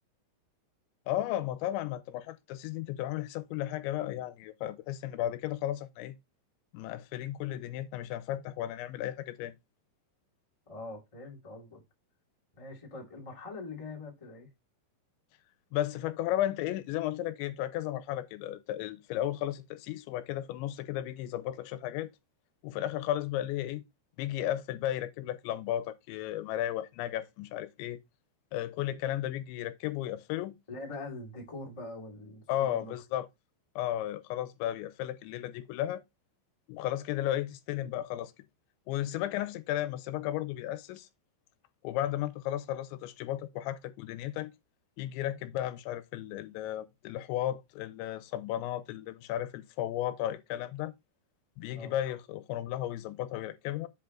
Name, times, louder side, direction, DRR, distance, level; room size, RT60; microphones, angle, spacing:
voice 1, 1.1-6.2 6.7-9.5 15.7-22.1 22.6-23.8 24.2-28.0 28.5-30.6 32.5-33.3 33.8-36.0 36.7-38.3 38.9-41.1 41.8-44.5 45.0-50.9 51.6-53.9, left 13 dB, 85° left, 2.9 m, -34 dB
voice 2, 10.7-11.8 12.5-14.5 30.7-32.9 51.7-51.9, left 2 dB, 20° left, 0.8 m, -43 dB
7.9 x 4.6 x 3.8 m
omnidirectional pair, 5.3 m